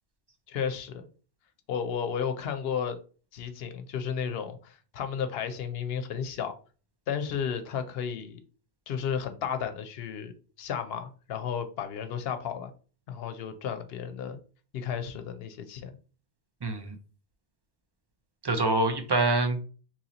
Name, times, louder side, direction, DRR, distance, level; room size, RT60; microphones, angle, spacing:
voice 1, 0.5-1.1 1.7-3.0 3.3-6.5 7.1-8.4 8.9-10.3 10.6-12.7 13.1-14.4 14.7-16.0, left 7 dB, 75° left, 0.8 m, -33 dB
voice 2, 16.6-17.0 18.4-19.6, right 2 dB, 40° right, 0.3 m, -25 dB
2.9 x 2.8 x 3.9 m
omnidirectional pair, 1.0 m